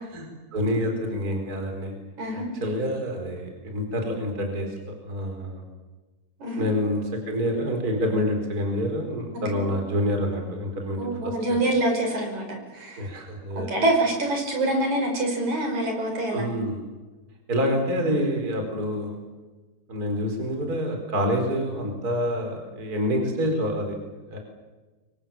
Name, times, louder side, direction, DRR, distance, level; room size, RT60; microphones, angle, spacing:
voice 1, 0.1-1.9 2.3-5.6 6.6-11.4 13.0-13.7 16.3-16.8 17.5-19.2 19.9-24.0 24.3-24.4, equal, 25° right, 4 dB, 4.6 m, -27 dB
voice 2, 2.2-2.5 6.4-6.6 9.5-9.6 11.0-13.1 13.6-16.5, right 1 dB, 60° right, 3 dB, 6.5 m, -25 dB
28.5 x 24.5 x 7.4 m, 1.2 s
omnidirectional pair, 3.8 m